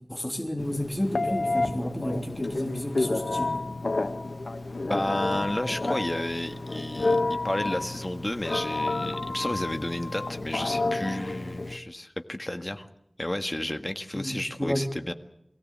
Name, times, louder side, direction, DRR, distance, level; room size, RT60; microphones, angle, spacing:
voice 1, 0.1-3.5 14.1-14.8, equal, 10° left, 2 dB, 3.2 m, -31 dB
Telephone, 0.6-11.8, left 2 dB, 80° left, 1.5 m, -30 dB
voice 2, 4.9-12.9 13.2-15.1, left 1 dB, 25° left, 7 dB, 1.7 m, -32 dB
24.0 x 17.0 x 8.6 m, 0.77 s
wide cardioid pair, 60°, 0 cm